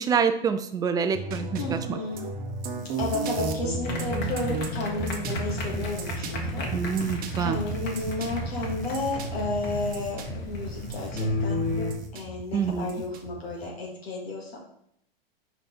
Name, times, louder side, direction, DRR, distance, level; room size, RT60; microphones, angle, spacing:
voice 1, 0.0-2.0 6.7-7.6 12.5-12.9, right 6 dB, 15° right, 9 dB, 0.4 m, -26 dB
sound 1, 1.1-13.7, right 3 dB, 30° right, 0.9 m, -35 dB
voice 2, 1.6-2.2 3.0-6.7 7.4-11.6 12.1-14.6, left 2 dB, 90° left, -3 dB, 2.0 m, -32 dB
sound 2, 3.8-11.9, left 2 dB, 35° left, 1.5 m, -33 dB
5.1 x 5.0 x 4.4 m, 0.71 s
hypercardioid pair, 110°, 30 cm